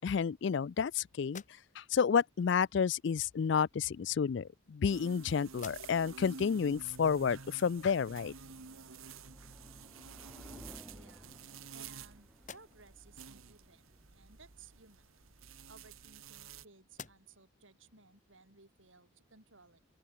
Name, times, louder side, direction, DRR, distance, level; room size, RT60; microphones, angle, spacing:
voice 1, 0.0-1.4 1.8-8.3, left 6 dB, 55° left, 0.3 m, -30 dB
sound 1, 1.2-2.1 3.2-3.3 4.3-5.2 5.5-6.2 6.7-6.8 9.5-9.6 10.0-10.7 11.3-12.0 12.3-13.1 15.1-16.5 16.9-17.6, left 6 dB, 35° left, 2.9 m, -55 dB
sound 2, 4.9-16.6, right 5 dB, 85° right, 1.7 m, -51 dB
sound 3, 6.7-15.0, equal, ahead, 6.8 m, -58 dB
voice 2, 10.9-11.3 11.7-15.1 15.7-19.8, right 4 dB, 70° right, 4.8 m, -60 dB
open air
head